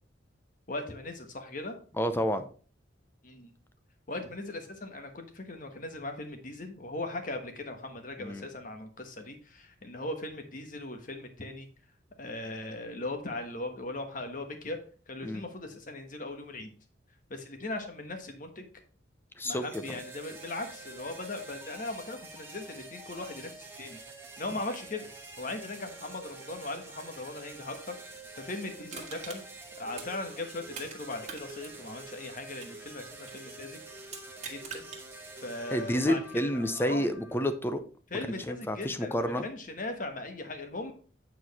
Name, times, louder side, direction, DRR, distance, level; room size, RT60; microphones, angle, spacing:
voice 1, 0.7-1.8 3.2-3.5 4.1-11.7 12.2-14.8 15.1-16.7 17.3-18.7 19.4-24.0 24.4-25.1 25.4-29.4 29.8-33.8 34.5-34.9 35.4-37.0 38.1-40.9, left 2 dB, 45° left, 6 dB, 1.3 m, -39 dB
voice 2, 2.0-2.5 8.2-8.5 15.2-15.4 19.4-19.6 35.7-37.8 38.5-39.5, equal, 10° left, 9 dB, 0.6 m, -29 dB
sound 1, 19.6-37.6, right 2 dB, 10° right, 1.3 m, -47 dB
Crushing, 28.9-31.0 31.2-33.5 34.0-35.0 35.5-35.6, right 5 dB, 40° right, 1.6 m, -44 dB
8.4 x 4.6 x 4.2 m, 0.40 s
head